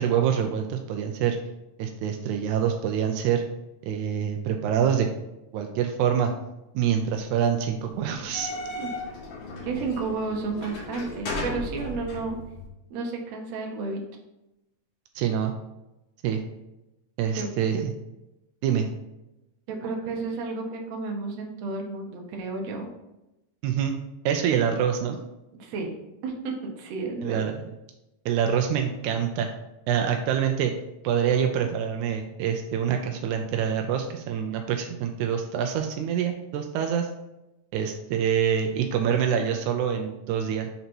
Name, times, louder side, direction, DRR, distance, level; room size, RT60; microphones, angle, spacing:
voice 1, 0.0-1.4 1.8-3.4 3.8-5.1 5.5-6.3 6.7-8.5 15.1-15.5 16.2-16.4 17.2-17.9 18.6-18.9 23.6-23.9 24.2-25.2 27.2-27.6 28.2-29.5 29.9-30.7 31.0-37.1 37.7-40.7, right 8 dB, 85° right, 4 dB, 1.7 m, -25 dB
sound 1, 8.1-12.7, left 2 dB, 75° left, 3.6 m, -36 dB
voice 2, 9.6-12.4 12.9-14.0 17.4-17.5 19.7-22.9 25.5-25.9 26.2-27.5, right 3 dB, 65° right, 1 dB, 1.8 m, -32 dB
6.5 x 4.0 x 4.4 m, 0.94 s
omnidirectional pair, 3.9 m